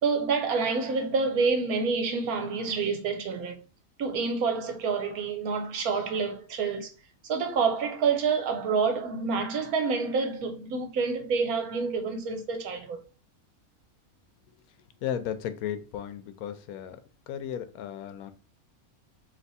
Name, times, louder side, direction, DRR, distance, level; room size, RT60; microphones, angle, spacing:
voice 1, 0.0-3.6 4.0-6.9 7.2-13.0, right 5 dB, 75° right, 1.3 m, -28 dB
voice 2, 15.0-17.0 17.3-18.3, left 9 dB, 75° left, 1.0 m, -35 dB
3.4 x 2.9 x 4.1 m
omnidirectional pair, 1.6 m